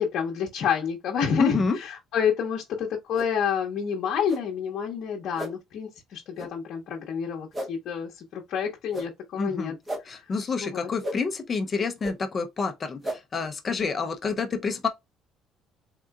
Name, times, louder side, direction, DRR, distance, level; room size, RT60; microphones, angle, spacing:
voice 1, 0.0-9.7 10.6-10.9, left 7 dB, 45° left, 0.8 m, -29 dB
voice 2, 1.4-1.8 9.4-9.8 10.1-14.9, left 5 dB, 25° left, 0.5 m, -28 dB
sound 1, 3.1-3.3 4.3-4.4 5.4-5.5 6.4-6.5 7.5-7.7 8.9-9.1 9.9-10.0 11.0-11.2 12.0-12.1 13.0-13.2, equal, 15° right, 0.7 m, -33 dB
3.7 x 3.7 x 2.2 m
cardioid pair, 175°, 0 cm